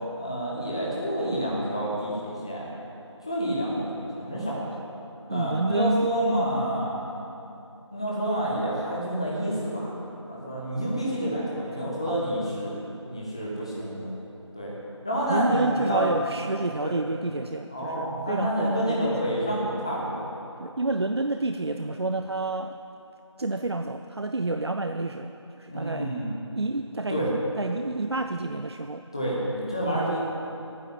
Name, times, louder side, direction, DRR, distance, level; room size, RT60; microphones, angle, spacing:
voice 1, 0.2-2.7 3.2-4.8 5.3-7.0 7.9-10.0 10.3-12.8 13.0-14.1 14.5-14.7 15.0-16.2 16.8-16.9 17.7-20.3 25.7-26.3 27.1-27.3 29.1-30.2, equal, 10° left, -6 dB, 1.0 m, -28 dB
voice 2, 5.3-6.1 12.1-12.2 15.3-19.1 20.6-22.8 23.4-25.3 25.6-26.1 26.6-27.3 27.6-29.0 29.8-30.2, right 2 dB, 55° right, 7 dB, 0.5 m, -29 dB
11.5 x 9.4 x 7.6 m, 2.8 s
figure-of-eight pair, 175°, 16 cm